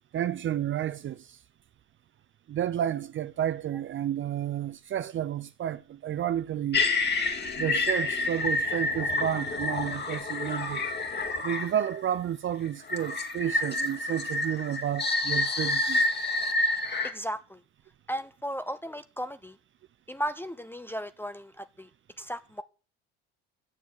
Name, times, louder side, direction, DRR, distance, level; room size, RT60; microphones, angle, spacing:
voice 1, 0.1-1.4 2.5-6.8 7.6-10.9 11.4-16.0, right 10 dB, 40° right, 0.6 m, -31 dB
sound 1, 6.7-12.0 12.9-17.1, left 2 dB, 35° left, 2.3 m, -28 dB
voice 2, 17.0-17.6 18.1-19.6 20.1-21.9 22.2-22.6, equal, 5° left, 0.7 m, -35 dB
8.2 x 7.0 x 8.6 m
supercardioid pair, 80°, 29 cm